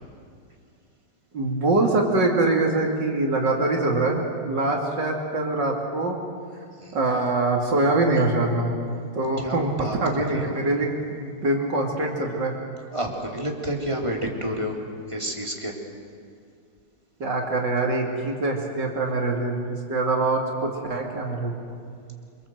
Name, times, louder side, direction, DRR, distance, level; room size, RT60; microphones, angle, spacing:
voice 1, 1.3-6.2 6.9-8.7 9.1-9.7 10.0-12.5 17.2-21.7, right 2 dB, 70° right, 0 dB, 3.1 m, -24 dB
voice 2, 9.4-10.0 10.3-10.5 12.9-14.8 15.1-15.7, equal, 15° right, 0 dB, 3.3 m, -29 dB
28.5 x 24.0 x 7.8 m, 2.3 s
omnidirectional pair, 2.0 m